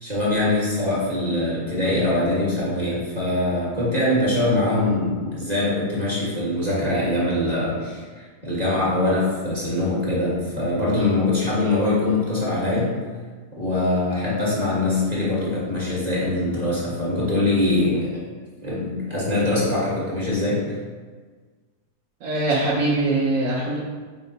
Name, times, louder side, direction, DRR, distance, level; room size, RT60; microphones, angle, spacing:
voice 1, 0.0-13.0 13.6-18.1 18.6-20.8, left 2 dB, 25° right, -8 dB, 1.2 m, -23 dB
voice 2, 22.2-23.8, right 2 dB, 65° right, -7 dB, 1.1 m, -22 dB
5.2 x 2.1 x 3.9 m, 1.4 s
omnidirectional pair, 1.8 m